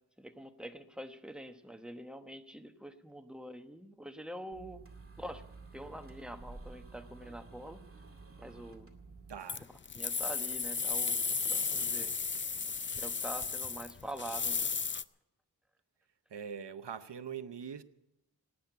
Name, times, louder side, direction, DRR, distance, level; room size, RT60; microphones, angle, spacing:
voice 1, 0.2-4.8 5.2-5.4 5.7-7.8 8.4-8.9 9.9-12.1 13.0-14.7, right 1 dB, ahead, 1.1 m, -45 dB
sound 1, 4.5-9.4, right 3 dB, 35° right, 2.2 m, -51 dB
voice 2, 9.3-9.7 16.3-17.8, right 7 dB, 85° right, 0.8 m, -42 dB
sound 2, 9.5-15.0, left 5 dB, 30° left, 0.5 m, -34 dB
18.0 x 9.4 x 8.1 m
wide cardioid pair, 55°, 40 cm